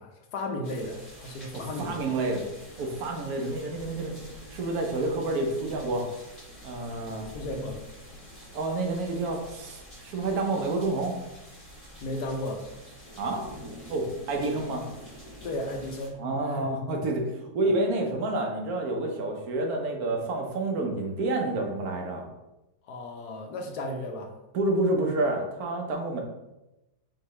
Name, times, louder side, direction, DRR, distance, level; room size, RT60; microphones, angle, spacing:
voice 1, 0.0-2.1 7.3-7.8 12.0-12.6 15.4-16.2 16.5-16.7 22.9-24.4, left 1 dB, 75° left, 3 dB, 1.2 m, -34 dB
sound 1, 0.6-16.1, equal, 25° left, 1.3 m, -47 dB
voice 2, 1.5-2.4 2.8-4.2 4.5-6.1 6.6-7.3 8.5-11.1 13.2-13.4 13.9-14.8 16.2-22.3 24.5-26.2, right 2 dB, 65° right, 2 dB, 1.2 m, -29 dB
4.7 x 3.2 x 3.1 m, 0.97 s
omnidirectional pair, 1.8 m